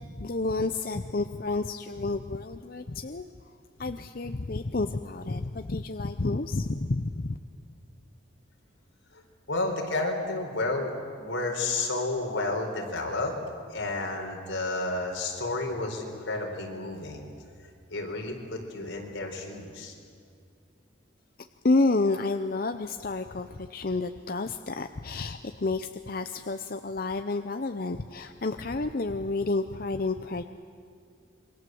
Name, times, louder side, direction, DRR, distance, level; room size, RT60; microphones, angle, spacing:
voice 1, 0.0-3.3 3.8-7.4 21.6-30.4, left 3 dB, 50° left, 8 dB, 0.6 m, -30 dB
voice 2, 9.5-13.3 13.7-17.2 17.9-19.9, left 2 dB, 80° left, 1 dB, 4.4 m, -31 dB
27.5 x 22.5 x 7.8 m, 2.2 s
head